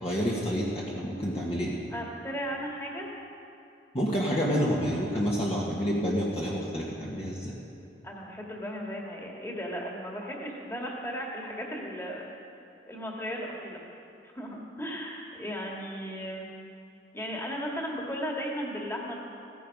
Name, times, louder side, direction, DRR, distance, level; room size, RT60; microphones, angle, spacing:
voice 1, 0.0-1.8 3.9-7.5, equal, 35° left, -4 dB, 1.6 m, -28 dB
voice 2, 1.9-3.1 8.0-12.2 12.9-13.8 14.3-16.5 17.1-19.1, equal, 15° left, -2 dB, 2.1 m, -36 dB
16.5 x 14.0 x 5.4 m, 2.6 s
head